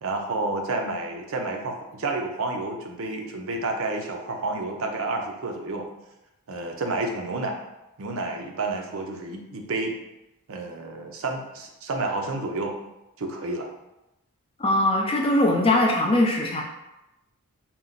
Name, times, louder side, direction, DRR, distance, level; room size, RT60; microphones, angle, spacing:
voice 1, 0.0-5.9 6.5-7.6 8.0-10.0 10.5-12.8 13.2-13.7, right 2 dB, 65° right, 2 dB, 0.6 m, -30 dB
voice 2, 14.6-16.6, left 1 dB, 25° left, 0 dB, 0.5 m, -21 dB
4.4 x 2.1 x 3.8 m, 0.94 s
head